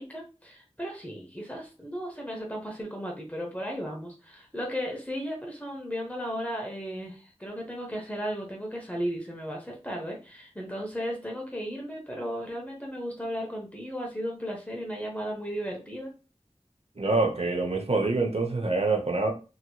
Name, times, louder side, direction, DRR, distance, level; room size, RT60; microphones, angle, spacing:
voice 1, 0.0-16.1, equal, 15° left, 0.7 m, -35 dB
voice 2, 17.0-19.3, right 3 dB, 65° right, 0.6 m, -26 dB
2.9 x 2.8 x 2.2 m
wide cardioid pair, 40°, 11 cm